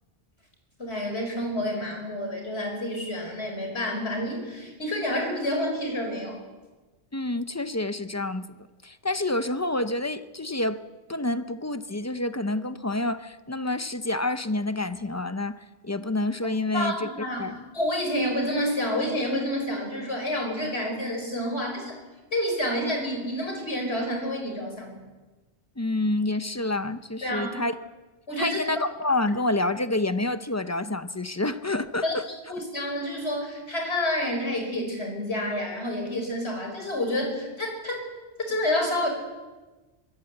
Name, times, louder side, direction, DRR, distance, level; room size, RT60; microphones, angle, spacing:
voice 1, 0.8-6.4 16.7-17.4 17.7-22.0 22.3-25.0 27.2-27.6 28.3-28.9 32.0-32.1 32.5-38.0 38.5-39.1, left 1 dB, 65° left, 2 dB, 5.3 m, -29 dB
voice 2, 7.1-8.5 8.8-10.8 11.1-17.1 17.4-17.6 25.8-27.8 28.4-32.2, left 2 dB, 15° left, 12 dB, 0.6 m, -28 dB
22.5 x 15.0 x 8.0 m, 1.2 s
omnidirectional pair, 1.2 m